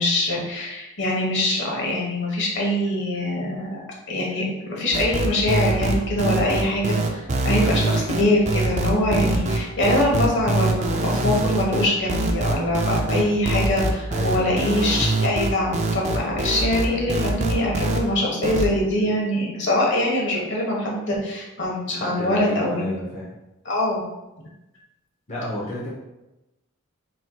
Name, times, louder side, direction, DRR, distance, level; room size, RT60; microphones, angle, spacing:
voice 1, 0.0-3.8 4.1-22.9 23.6-24.0, left 1 dB, 55° left, -3 dB, 1.1 m, -23 dB
sound 1, 4.9-18.0 18.4-18.7, right 2 dB, 30° right, 0.4 m, -23 dB
voice 2, 14.1-14.6 21.9-23.3 25.3-25.9, left 1 dB, 30° left, -6 dB, 0.8 m, -31 dB
4.3 x 4.2 x 2.2 m, 0.98 s
head